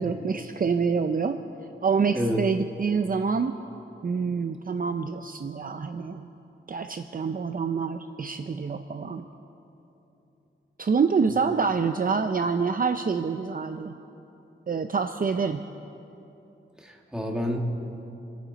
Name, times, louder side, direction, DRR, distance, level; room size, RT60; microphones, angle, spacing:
voice 1, 0.0-1.4 1.8-3.5 4.0-6.3 6.7-9.3 10.8-13.9 14.7-15.6, right 5 dB, 45° right, 8 dB, 0.5 m, -26 dB
voice 2, 16.8-17.6, equal, 5° right, 0 dB, 1.9 m, -29 dB
28.0 x 9.5 x 4.0 m, 3.0 s
wide cardioid pair, 85°, 21 cm